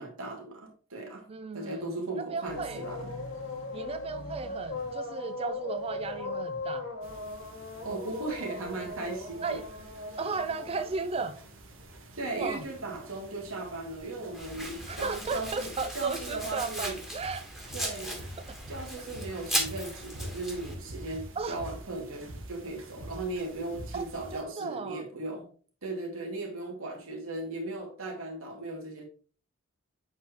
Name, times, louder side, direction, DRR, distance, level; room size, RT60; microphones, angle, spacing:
voice 1, 0.0-1.3 1.5-3.1 7.8-9.6 10.1-10.2 12.2-17.0 17.7-18.3 18.7-25.5 25.8-29.0, right 2 dB, 90° right, 2.5 m, -37 dB
voice 2, 1.3-1.9 2.2-2.8 3.7-6.9 9.4-9.6 10.2-11.4 12.3-12.6 14.9-17.4 18.5-18.6 21.4-21.6 23.9-24.0 24.3-25.0, right 4 dB, 30° right, 0.4 m, -35 dB
sound 1, 2.5-12.5 12.7-15.7, left 3 dB, 85° left, 1.6 m, -39 dB
sound 2, 7.0-24.4, right 1 dB, 75° right, 1.6 m, -47 dB
Domestic sounds home sounds, 14.3-20.7, equal, ahead, 1.4 m, -37 dB
8.3 x 4.8 x 3.0 m
head